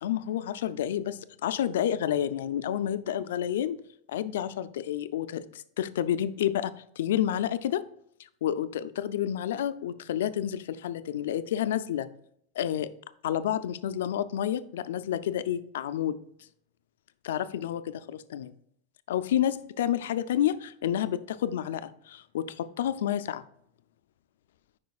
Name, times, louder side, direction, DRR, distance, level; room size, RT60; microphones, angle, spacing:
voice 1, 0.0-3.8 4.1-7.8 8.4-12.1 12.6-12.9 13.2-16.2 17.2-18.5 19.1-23.4, left 10 dB, 85° left, 13 dB, 0.4 m, -29 dB
9.3 x 5.1 x 2.4 m, 0.71 s
supercardioid pair, 165°, 0 cm